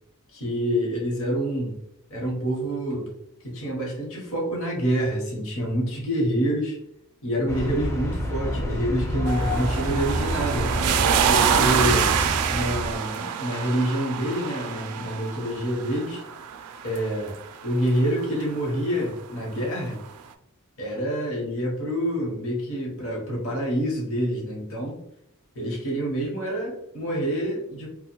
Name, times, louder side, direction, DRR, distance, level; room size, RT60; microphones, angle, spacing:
voice 1, 0.3-1.8 2.1-3.1 3.4-6.8 7.2-10.7 11.3-12.1 12.5-16.2 16.8-17.3 17.6-20.0 20.8-25.0 25.5-27.9, equal, 65° left, -3 dB, 0.8 m, -27 dB
sound 1, 7.5-13.0, equal, 15° left, 0.4 m, -28 dB
sound 2, 9.3-18.3 19.6-19.7, right 7 dB, 90° right, 0.3 m, -26 dB
2.4 x 2.1 x 2.9 m, 0.75 s
head